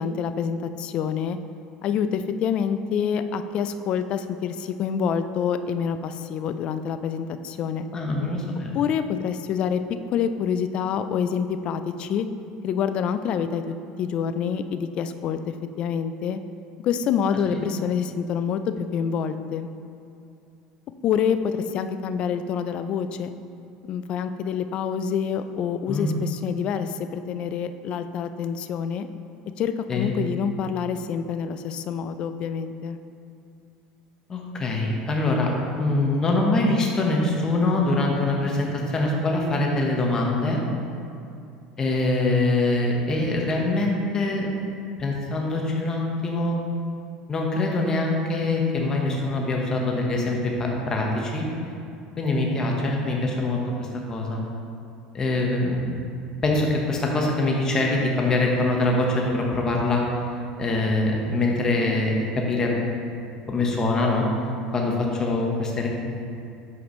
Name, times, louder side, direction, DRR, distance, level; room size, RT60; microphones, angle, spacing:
voice 1, 0.0-1.4 1.8-7.9 8.7-9.8 10.1-12.3 12.6-16.4 16.8-19.7 21.0-23.3 23.9-29.1 29.6-33.0, left 7 dB, 50° left, 10 dB, 0.4 m, -27 dB
voice 2, 7.9-8.7 17.3-17.6 25.9-26.1 29.9-30.1 34.3-40.6 41.8-44.5 45.0-46.6 47.3-51.4 52.2-54.4 55.1-56.0 56.4-60.0 60.6-62.7 63.5-64.3 64.7-65.9, left 2 dB, 25° left, 0 dB, 1.1 m, -24 dB
8.3 x 4.9 x 3.1 m, 2.6 s
supercardioid pair, 120°, 2 cm